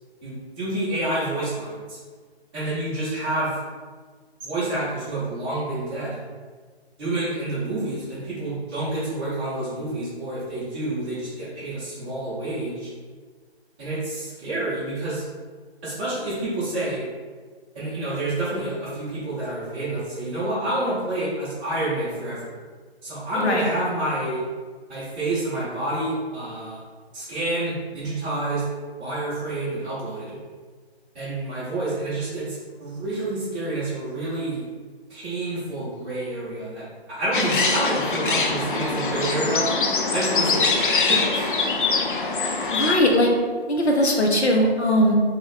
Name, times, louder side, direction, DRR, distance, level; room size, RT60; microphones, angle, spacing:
voice 1, 0.2-2.0 2.5-3.6 4.4-6.2 7.0-12.9 13.8-15.2 15.8-17.1 17.7-22.5 23.0-24.4 24.9-26.8 27.1-28.6 29.0-30.4 31.1-34.6 35.1-39.7 40.1-41.5, right 2 dB, 10° right, -11 dB, 0.8 m, -28 dB
sound 1, 37.3-43.0, left 4 dB, 50° left, 0.5 m, -23 dB
voice 2, 42.7-43.3 43.7-45.1, equal, 80° left, 1 dB, 0.9 m, -19 dB
2.9 x 2.4 x 4.1 m, 1.5 s
figure-of-eight pair, 150°, 32 cm